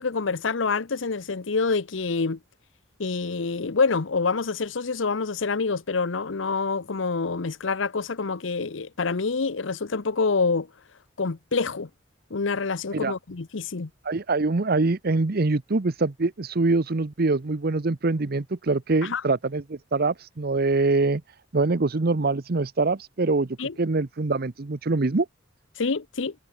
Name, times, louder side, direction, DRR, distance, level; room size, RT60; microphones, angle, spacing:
voice 1, 0.0-2.4 3.0-10.7 11.2-11.9 12.3-13.9 19.0-19.2 23.6-23.7 25.8-26.3, left 4 dB, 85° left, 0.8 m, -26 dB
voice 2, 14.0-21.2 21.5-23.5 23.8-25.3, right 3 dB, 55° right, 0.8 m, -24 dB
head